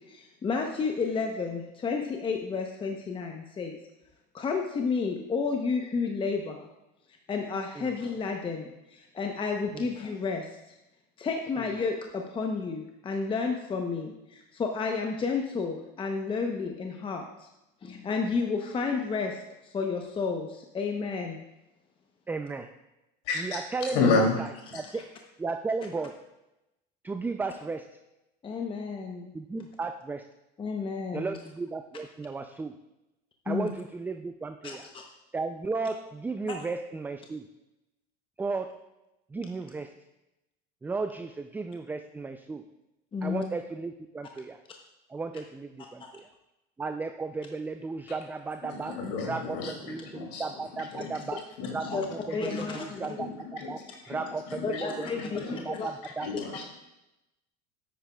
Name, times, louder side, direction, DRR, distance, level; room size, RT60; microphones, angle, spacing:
voice 1, 0.1-3.8 4.3-6.7 7.3-10.8 11.2-17.5 17.8-21.4 24.9-25.0 28.4-29.3 30.6-31.4 33.5-33.7 34.6-35.0 36.5-36.6 43.1-43.4 46.0-46.1 51.8-52.1 52.3-53.2 54.6-55.9, left 4 dB, 25° left, 3 dB, 0.8 m, -31 dB
voice 2, 22.3-22.7 23.4-24.5 24.7-25.0 25.4-26.2 27.0-27.9 29.3-30.2 31.1-32.7 33.5-34.8 35.3-37.5 38.4-38.9 39.3-39.9 40.8-42.6 43.2-44.6 45.1-46.2 46.8-48.9 49.2-51.4 51.7-52.0 52.3-53.3 53.7-53.8 54.1-55.1 55.5-56.3, right 4 dB, 10° right, 7 dB, 0.3 m, -34 dB
voice 3, 23.2-24.3 24.7-24.8 48.6-50.4 50.9-51.2 51.6-52.1 52.5-53.8 54.0-55.7 56.0-56.6, left 4 dB, 75° left, 0 dB, 2.7 m, -32 dB
9.5 x 9.1 x 2.3 m, 0.94 s
supercardioid pair, 105°, 21 cm